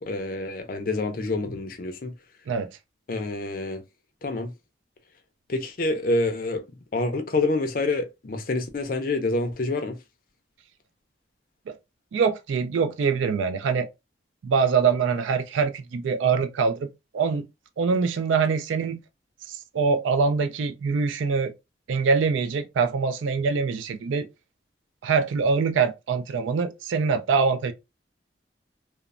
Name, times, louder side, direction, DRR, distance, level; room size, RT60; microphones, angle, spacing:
voice 1, 0.0-2.1 3.1-3.8 4.2-4.5 5.5-6.7 6.9-10.0, left 2 dB, 45° left, 0.4 m, -27 dB
voice 2, 12.1-13.9 14.4-16.9 17.1-17.4 17.8-19.0 19.5-21.5 21.9-24.3 25.0-27.7, right 5 dB, 85° right, 0.3 m, -24 dB
3.0 x 2.0 x 2.3 m
head